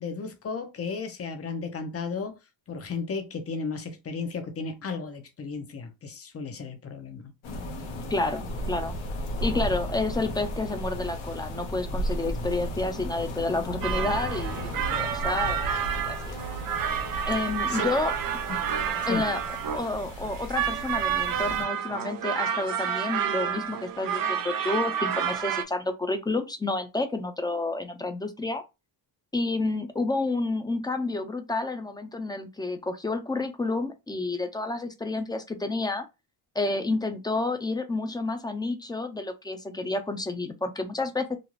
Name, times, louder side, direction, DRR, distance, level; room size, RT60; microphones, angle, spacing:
voice 1, 0.0-2.4 2.7-7.3 17.7-17.9 19.1-19.2, left 4 dB, 30° left, 0.8 m, -34 dB
sound 1, 7.4-21.6, equal, 65° left, 1.0 m, -34 dB
voice 2, 8.1-8.9 9.4-15.7 16.0-16.3 17.3-18.1 19.1-19.4 19.7-28.6 29.3-36.1 36.6-41.4, left 2 dB, 10° left, 0.3 m, -30 dB
sound 2, 13.8-25.6, right 8 dB, 45° right, 0.6 m, -30 dB
2.5 x 2.3 x 3.1 m
cardioid pair, 85°, 49 cm